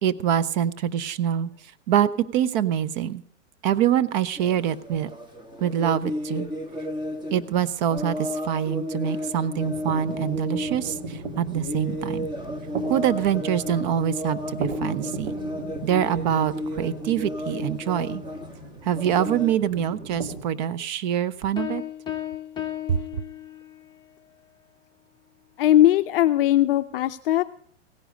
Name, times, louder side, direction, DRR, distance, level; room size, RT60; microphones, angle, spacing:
voice 1, 0.0-1.5 1.9-3.2 3.6-5.1 5.6-6.5 7.3-12.3 12.9-15.3 15.8-18.2 18.8-21.8 22.9-23.2, right 10 dB, 40° right, 16 dB, 0.5 m, -25 dB
sound 1, 4.4-19.5, left 1 dB, 10° right, 1.2 m, -33 dB
sound 2, 9.5-20.4, right 2 dB, 80° right, 2.5 m, -37 dB
sound 3, 21.6-24.0, left 12 dB, 10° left, 0.9 m, -34 dB
voice 2, 25.6-27.4, left 13 dB, 50° left, 9 dB, 0.5 m, -19 dB
16.5 x 10.0 x 5.1 m, 0.63 s
hypercardioid pair, 135°, 37 cm